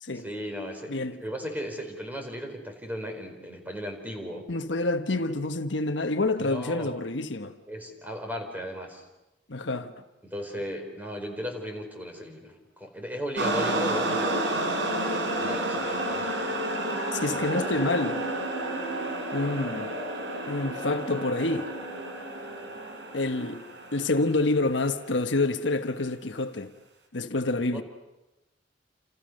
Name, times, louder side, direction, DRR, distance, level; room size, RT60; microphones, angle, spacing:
voice 1, 0.1-4.5 6.4-7.0 7.7-9.0 10.2-14.7 15.3-16.5 17.2-17.7 27.7-27.8, equal, 10° right, 4.6 m, -36 dB
voice 2, 0.9-1.2 4.5-7.6 9.5-9.9 17.1-18.3 19.3-19.9 20.5-21.7 23.1-23.6 23.9-26.7 27.1-27.8, left 2 dB, 75° left, 1.3 m, -27 dB
sound 1, 13.4-24.9, right 1 dB, 70° right, 4.3 m, -31 dB
29.0 x 28.5 x 6.6 m
head